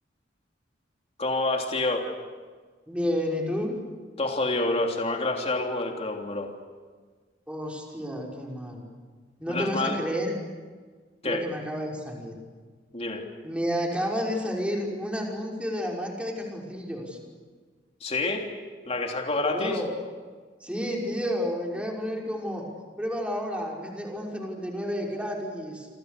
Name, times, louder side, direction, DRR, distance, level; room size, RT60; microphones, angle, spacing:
voice 1, 1.2-2.1 4.2-6.5 9.5-10.0 11.2-11.4 12.9-13.2 18.0-18.4 18.9-19.8, left 2 dB, 35° left, 2 dB, 3.2 m, -27 dB
voice 2, 2.9-3.7 7.5-8.8 9.4-10.3 11.2-12.3 13.4-17.2 19.5-19.9 20.6-22.7 23.0-25.9, equal, 5° right, -1 dB, 5.8 m, -31 dB
28.0 x 27.0 x 6.9 m, 1.5 s
head